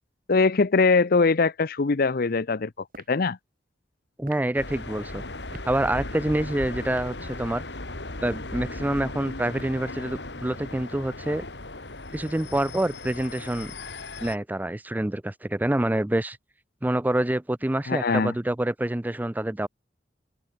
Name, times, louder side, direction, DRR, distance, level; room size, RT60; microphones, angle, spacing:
voice 1, 0.3-2.7 3.1-3.4 17.9-18.3, left 4 dB, 60° left, 0.7 m, -21 dB
sound 1, 2.9-3.2 4.2-4.5 5.5-5.7 6.8-7.2 8.1-8.5 9.6-9.9, right 3 dB, 55° right, 4.7 m, -47 dB
voice 2, 4.2-5.2 5.6-7.6 8.2-11.4 12.1-13.7 14.2-16.4 16.8-19.7, right 1 dB, 10° right, 0.5 m, -27 dB
sound 2, 4.5-14.3, left 2 dB, 75° left, 3.7 m, -37 dB
open air
head